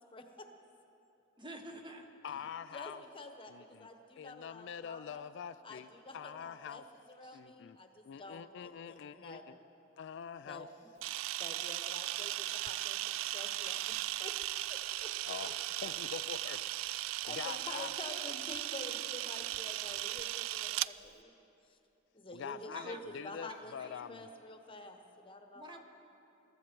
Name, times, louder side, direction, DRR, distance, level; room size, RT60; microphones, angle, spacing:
voice 1, 0.1-0.5 2.7-5.2 5.6-9.4 10.4-10.7 11.4-14.3 14.7-15.5 17.2-21.3 22.1-25.8, left 2 dB, 25° left, 5 dB, 1.1 m, -49 dB
voice 2, 1.4-2.0 2.3-2.5 7.2-7.4 22.7-23.0 23.4-24.1 25.5-25.8, right 1 dB, 25° right, 4 dB, 1.2 m, -49 dB
voice 3, 2.2-3.0 3.5-3.9 4.2-5.9 6.1-6.8 7.3-7.8 8.0-9.4 10.0-10.7 15.2-16.6 17.3-17.9 22.3-24.3, left 7 dB, 65° left, 12 dB, 0.3 m, -44 dB
Camera, 11.0-20.9, right 15 dB, 80° right, 0.3 m, -37 dB
22.0 x 14.0 x 4.5 m, 2.9 s
head